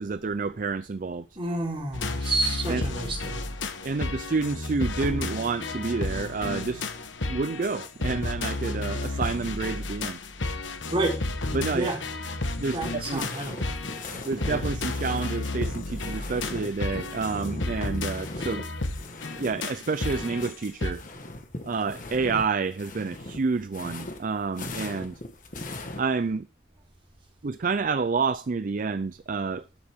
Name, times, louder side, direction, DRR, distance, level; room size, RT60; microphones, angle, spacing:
voice 1, 0.0-1.3 2.7-2.8 3.8-6.9 7.3-10.2 11.5-11.9 12.6-13.3 14.2-18.6 19.4-21.0 21.6-25.2 26.0-26.5 27.4-29.7, right 4 dB, 45° right, 0.4 m, -29 dB
voice 2, 1.4-3.5 10.9-11.2 11.7-12.0 12.7-13.7, right 2 dB, 25° right, 3.9 m, -29 dB
sound 1, 1.9-20.9, left 2 dB, 70° left, 1.3 m, -32 dB
sound 2, 13.0-20.5 20.8-26.0, left 2 dB, 40° left, 1.6 m, -39 dB
12.5 x 7.7 x 3.6 m
head